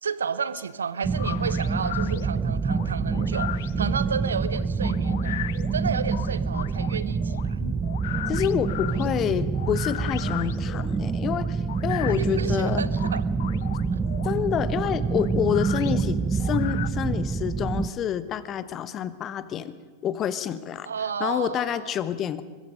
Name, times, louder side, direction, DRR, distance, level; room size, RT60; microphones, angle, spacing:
voice 1, 0.0-5.4 5.7-7.6 12.2-13.5 20.9-22.0, right 6 dB, 70° right, 16 dB, 0.7 m, -32 dB
sound 1, 1.0-17.9, right 5 dB, 15° right, 0.8 m, -27 dB
sound 2, 1.1-16.9, left 14 dB, 55° left, 0.6 m, -38 dB
voice 2, 8.3-12.8 14.2-19.7 20.0-20.9 21.2-22.4, left 9 dB, 30° left, 14 dB, 1.0 m, -28 dB
23.0 x 21.5 x 5.3 m, 1.5 s
figure-of-eight pair, 90°, 0 cm